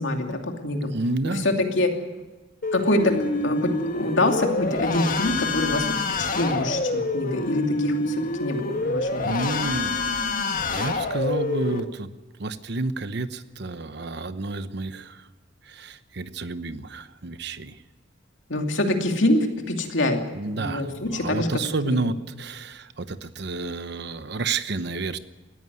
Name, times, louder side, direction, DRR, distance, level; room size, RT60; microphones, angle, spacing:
voice 1, 0.0-0.9 1.4-1.9 2.7-3.1 3.4-5.9 6.2-9.3 18.5-20.2 20.6-21.5 21.8-22.0, left 1 dB, 75° left, 3 dB, 2.7 m, -25 dB
voice 2, 0.9-1.5 9.2-10.2 10.7-12.1 12.4-15.3 15.6-17.8 20.3-25.2, right 3 dB, 60° right, 12 dB, 1.0 m, -30 dB
sound 1, 2.6-11.8, left 2 dB, 45° left, 1.7 m, -27 dB
19.0 x 14.5 x 9.4 m, 1.2 s
head